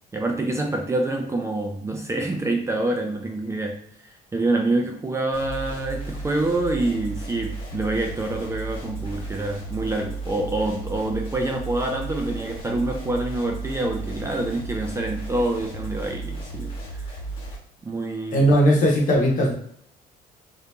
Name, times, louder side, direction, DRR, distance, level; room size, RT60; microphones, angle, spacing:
voice 1, 0.1-3.8 4.0-16.7 17.8-18.5, right 2 dB, 15° right, 2 dB, 0.4 m, -26 dB
sound 1, 5.3-17.6, right 2 dB, 30° left, 1.3 m, -34 dB
voice 2, 18.3-19.5, equal, 50° left, -2 dB, 1.0 m, -18 dB
2.8 x 2.5 x 2.2 m, 0.65 s
cardioid pair, 110°, 17 cm